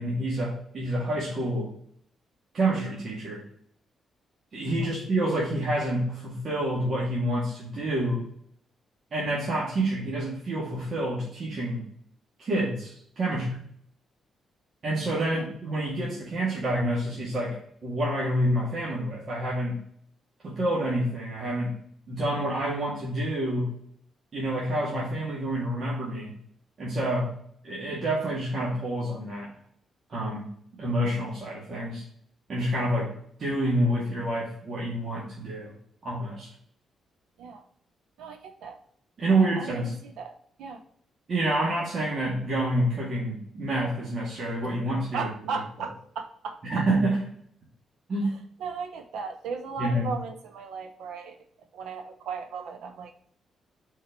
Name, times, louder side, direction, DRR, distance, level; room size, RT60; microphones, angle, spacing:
voice 1, 0.0-1.7 2.5-3.4 4.5-8.2 9.1-11.8 12.4-13.6 14.8-19.7 20.4-21.8 22.1-23.7 24.3-26.3 26.8-27.3 27.6-29.5 30.1-30.5 30.8-32.0 32.5-33.1 33.4-35.7 36.0-36.5 39.2-39.9 41.3-45.3 46.6-47.2 48.1-48.3 49.8-50.1, right 1 dB, 55° right, -5 dB, 2.2 m, -28 dB
voice 2, 38.2-38.8 39.3-40.8 45.1-46.9 48.2-48.3 48.6-51.4 51.7-53.1, right 5 dB, 80° right, 7 dB, 0.9 m, -36 dB
4.6 x 4.4 x 5.9 m, 0.64 s
cardioid pair, 75°, 0 cm